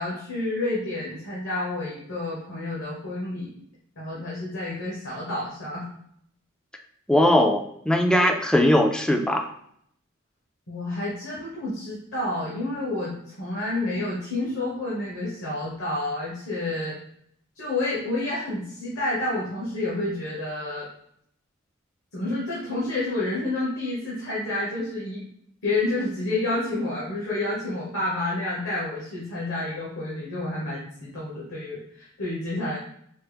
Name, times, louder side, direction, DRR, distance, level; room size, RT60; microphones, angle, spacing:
voice 1, 0.0-3.5 4.0-5.9 10.7-17.0 17.6-20.9 22.1-25.2 25.6-32.8, left 2 dB, 70° left, -6 dB, 1.1 m, -29 dB
voice 2, 7.1-9.5, left 1 dB, 5° left, 4 dB, 0.3 m, -20 dB
4.3 x 2.0 x 3.3 m, 0.69 s
head